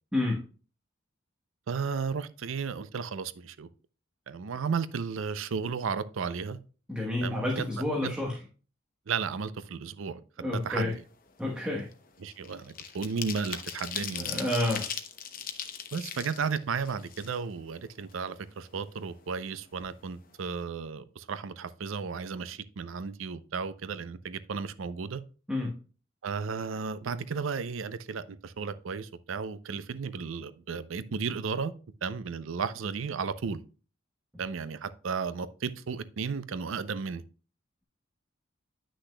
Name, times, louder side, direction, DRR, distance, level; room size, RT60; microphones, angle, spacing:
voice 1, 1.7-3.7 4.3-6.6 7.2-7.7 8.0-8.1 9.1-10.2 10.6-10.9 12.2-14.5 15.9-25.2 26.2-31.7 32.0-33.6 34.4-37.2, right 5 dB, 85° right, 0.5 m, -34 dB
voice 2, 6.9-8.4 10.4-10.9 11.4-11.9 13.9-14.9 25.5-25.7, left 1 dB, 5° right, 1.2 m, -30 dB
sound 1, 10.7-11.0 11.3-17.7 18.1-18.2 18.5-19.5 19.8-19.9 20.2-20.5, left 8 dB, 45° left, 0.8 m, -39 dB
9.9 x 6.2 x 2.2 m
head